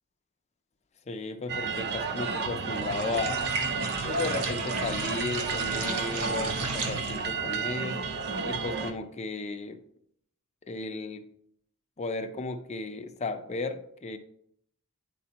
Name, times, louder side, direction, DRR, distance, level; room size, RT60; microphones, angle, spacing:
voice 1, 1.1-3.5 4.0-8.0 8.5-9.8 10.7-11.2 12.0-14.2, left 3 dB, 30° left, 7 dB, 0.5 m, -34 dB
sound 1, 1.5-8.9, right 5 dB, 45° right, 0.5 m, -32 dB
sound 2, 2.7-7.4, right 3 dB, 85° right, 1.0 m, -35 dB
10.0 x 4.3 x 2.9 m, 0.69 s
head